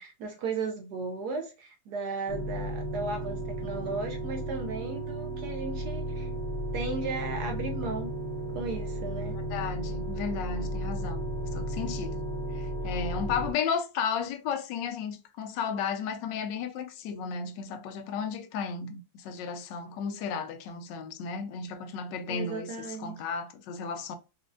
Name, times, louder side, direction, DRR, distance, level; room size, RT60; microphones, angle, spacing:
voice 1, 0.0-6.3 6.7-8.1 8.5-9.3 22.3-23.1, right 3 dB, 70° right, 1.0 m, -35 dB
sound 1, 2.3-13.5, equal, 60° left, 0.8 m, -34 dB
voice 2, 9.4-11.2 11.5-12.2 12.5-24.1, left 6 dB, 80° left, 1.2 m, -34 dB
4.2 x 2.3 x 2.5 m
omnidirectional pair, 2.0 m